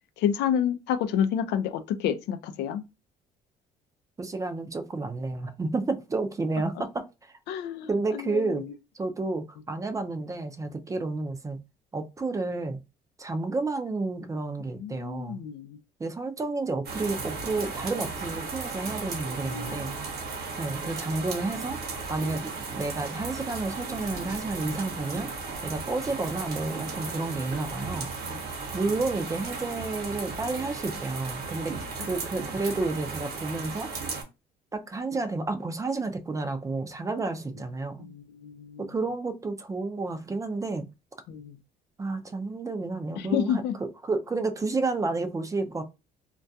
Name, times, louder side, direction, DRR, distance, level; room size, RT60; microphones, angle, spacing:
voice 1, 0.2-2.8 7.5-8.4 14.8-15.8 19.4-19.9 28.3-28.4 38.0-38.8 41.3-41.6 43.2-43.7, left 9 dB, 80° left, 0.4 m, -29 dB
voice 2, 4.2-7.4 7.9-8.6 8.9-11.6 11.9-12.8 13.2-15.4 16.0-19.9 20.6-21.8 22.1-25.3 25.6-28.1 28.7-33.9 34.7-38.1 38.9-40.9 42.0-43.6 44.0-45.8, right 3 dB, 20° right, 0.4 m, -31 dB
sound 1, 16.8-34.2, right 4 dB, 70° right, 0.9 m, -35 dB
2.3 x 2.2 x 2.6 m
cardioid pair, 110°, 17 cm